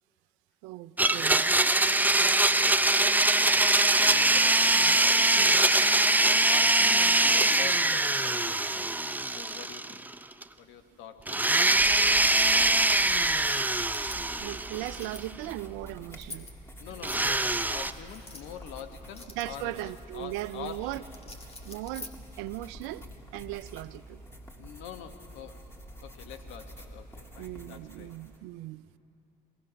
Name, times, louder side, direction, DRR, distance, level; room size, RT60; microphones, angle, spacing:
voice 1, 0.6-1.5 4.7-5.0 5.3-5.6 14.4-16.5 19.3-21.0 21.6-23.0 23.3-24.2 27.4-28.8, right 17 dB, 70° right, 0.5 m, -38 dB
Domestic sounds home sounds, 1.0-10.1 10.4-10.5 11.3-15.2 17.0-17.9, right 2 dB, 10° right, 0.6 m, -23 dB
voice 2, 2.5-3.1 3.5-5.5 6.0-8.9 9.3-10.0 10.6-13.1 16.8-20.9 24.6-25.6 26.0-28.1, left 9 dB, 70° left, 1.4 m, -45 dB
sound 1, 11.7-28.4, equal, 10° left, 2.8 m, -47 dB
sound 2, 13.8-22.7, left 2 dB, 30° left, 2.3 m, -50 dB
22.0 x 18.5 x 6.4 m
hypercardioid pair, 55°, 21 cm